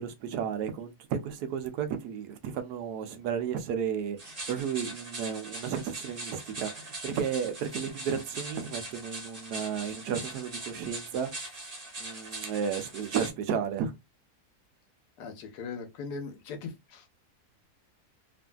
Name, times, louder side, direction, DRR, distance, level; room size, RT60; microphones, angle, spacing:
voice 1, 0.0-11.3 12.0-13.9, right 7 dB, 85° right, 1.2 m, -33 dB
sound 1, 4.2-13.3, right 2 dB, 35° right, 1.2 m, -41 dB
voice 2, 15.2-17.1, left 5 dB, 90° left, 1.3 m, -39 dB
3.1 x 2.5 x 2.2 m
omnidirectional pair, 1.7 m